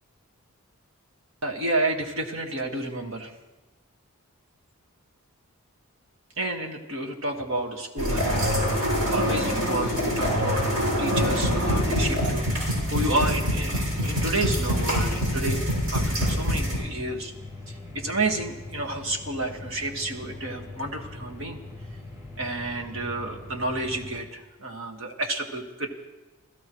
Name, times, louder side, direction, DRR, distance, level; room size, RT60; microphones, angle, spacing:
voice 1, 1.4-3.3 6.4-15.6 15.9-17.3 17.7-21.6 22.4-25.9, right 2 dB, 65° right, 2 dB, 1.8 m, -30 dB
sound 1, 8.0-16.8, equal, 80° right, 6.8 m, -25 dB
sound 2, 12.2-24.2, left 2 dB, 15° right, 3.9 m, -42 dB
28.0 x 16.0 x 3.2 m, 1.2 s
head